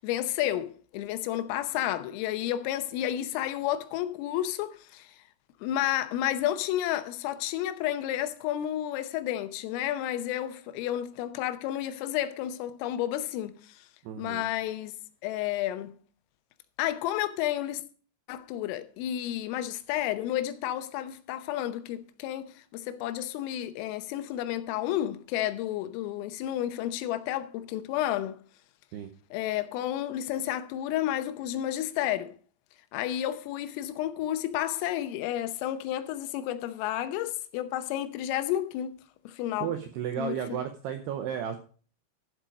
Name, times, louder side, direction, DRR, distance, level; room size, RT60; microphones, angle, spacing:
voice 1, 0.0-5.1 5.6-13.8 14.2-15.0 15.2-16.0 16.8-17.8 18.3-28.4 29.3-32.3 32.9-39.0 39.3-39.7 40.2-40.4, left 12 dB, 85° left, 3.4 m, -31 dB
voice 2, 14.0-14.5 28.9-29.1 39.6-41.6, right 9 dB, 85° right, 2.3 m, -33 dB
12.0 x 7.6 x 5.0 m
omnidirectional pair, 5.8 m